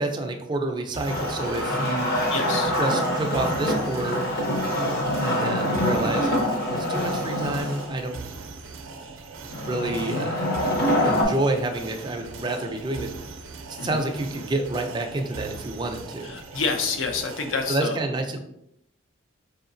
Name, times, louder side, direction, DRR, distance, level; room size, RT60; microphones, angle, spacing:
voice 1, 0.0-2.2 2.8-4.2 5.2-6.3 6.7-8.2 8.8-8.9 9.4-10.4 11.0-13.3 13.7-16.4 17.7-18.4, right 2 dB, 20° right, 3 dB, 0.4 m, -28 dB
sound 1, 0.9-17.7, right 4 dB, 85° right, 0.5 m, -40 dB
Wood, 1.1-7.9 9.5-11.2, equal, 50° left, 0.8 m, -25 dB
voice 2, 2.3-2.7 10.1-10.3 13.8-14.0 16.2-18.0, left 4 dB, 70° left, 5 dB, 0.5 m, -28 dB
4.5 x 2.8 x 2.6 m, 0.78 s
head